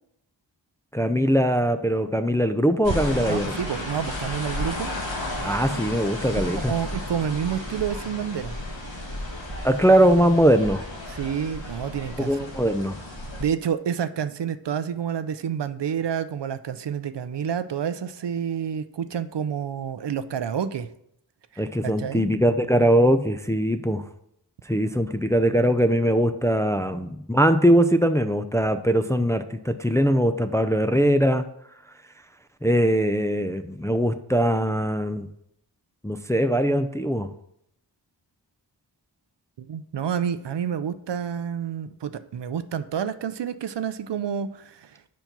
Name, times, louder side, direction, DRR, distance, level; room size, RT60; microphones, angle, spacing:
voice 1, 0.9-3.5 5.4-6.7 9.6-10.8 12.2-13.0 21.6-24.0 24.7-31.5 32.6-35.3 36.0-37.3, equal, 5° left, 8 dB, 0.3 m, -21 dB
sound 1, 2.8-13.4, left 1 dB, 85° left, 1.8 m, -33 dB
voice 2, 3.3-4.9 6.5-8.5 11.1-12.4 13.4-20.9 21.5-22.3 39.6-45.1, right 8 dB, 70° right, 13 dB, 0.5 m, -29 dB
5.2 x 4.6 x 5.8 m, 0.74 s
wide cardioid pair, 45°, 45 cm